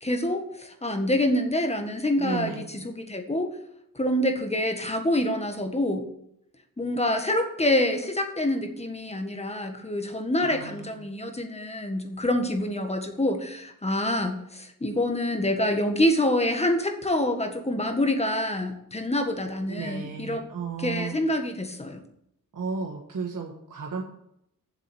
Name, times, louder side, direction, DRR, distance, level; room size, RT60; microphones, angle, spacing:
voice 1, 0.0-3.5 3.9-6.0 6.8-20.4 20.8-22.0, left 1 dB, 20° left, 4 dB, 1.6 m, -26 dB
voice 2, 2.2-2.7 10.4-11.0 19.7-21.2 22.5-24.0, right 5 dB, 65° right, 0 dB, 1.5 m, -34 dB
7.5 x 7.4 x 8.4 m, 0.76 s
wide cardioid pair, 135°, 34 cm